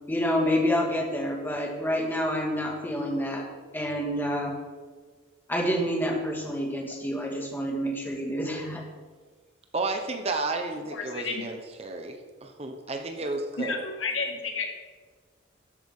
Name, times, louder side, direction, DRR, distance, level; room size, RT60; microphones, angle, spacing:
voice 1, 0.1-3.5 3.7-4.6 5.5-8.8, equal, 10° left, -1 dB, 1.8 m, -28 dB
voice 2, 9.7-13.8, right 3 dB, 30° right, 5 dB, 0.9 m, -32 dB
voice 3, 10.9-11.4 13.6-14.8, left 4 dB, 85° left, 3 dB, 1.6 m, -31 dB
13.0 x 8.5 x 3.7 m, 1.5 s
head